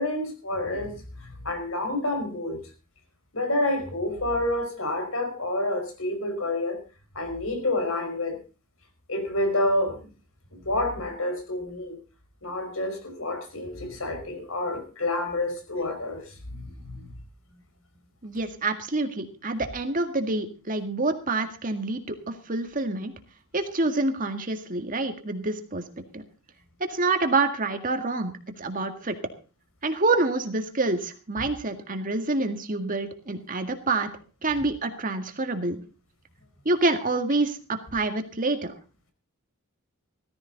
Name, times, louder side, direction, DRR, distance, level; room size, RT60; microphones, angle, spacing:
voice 1, 0.0-2.6 3.3-6.8 7.2-8.4 9.1-10.1 10.5-12.0 12.4-17.2, left 1 dB, 75° left, 5 dB, 5.4 m, -29 dB
voice 2, 18.2-23.1 23.5-25.8 26.1-26.2 26.8-28.3 28.6-29.1 29.8-34.1 34.4-35.8 36.7-38.7, right 2 dB, 40° right, 7 dB, 2.0 m, -27 dB
16.5 x 14.5 x 4.1 m, 0.35 s
head